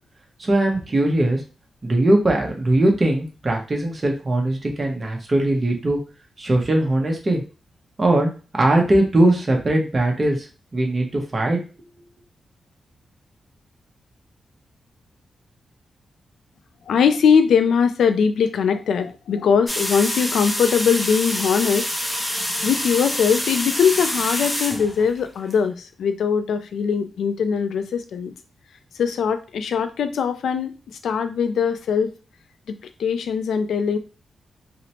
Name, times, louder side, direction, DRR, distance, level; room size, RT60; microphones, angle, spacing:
voice 1, 0.4-1.4 1.8-6.0 6.4-7.4 8.0-10.5 10.7-11.6, right 1 dB, 30° right, 1 dB, 0.7 m, -20 dB
voice 2, 16.9-21.9 22.6-28.3 29.0-32.1 32.7-34.0, left 6 dB, 85° left, 9 dB, 0.3 m, -21 dB
sound 1, 19.7-25.5, equal, 5° left, 0.5 m, -27 dB
2.9 x 2.0 x 2.8 m, 0.34 s
wide cardioid pair, 110°, 0 cm